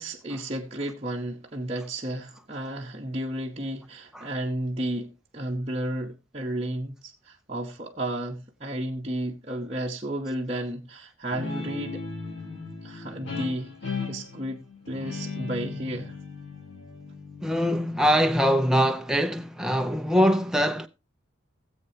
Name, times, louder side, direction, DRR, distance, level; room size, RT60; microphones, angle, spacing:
voice 1, 0.0-12.0 12.8-16.2, right 1 dB, 30° right, 0.9 m, -33 dB
Guitar, 11.3-18.5, left 4 dB, 65° left, 3.5 m, -37 dB
voice 2, 17.4-20.9, equal, 5° right, 0.5 m, -23 dB
17.5 x 8.0 x 2.8 m
head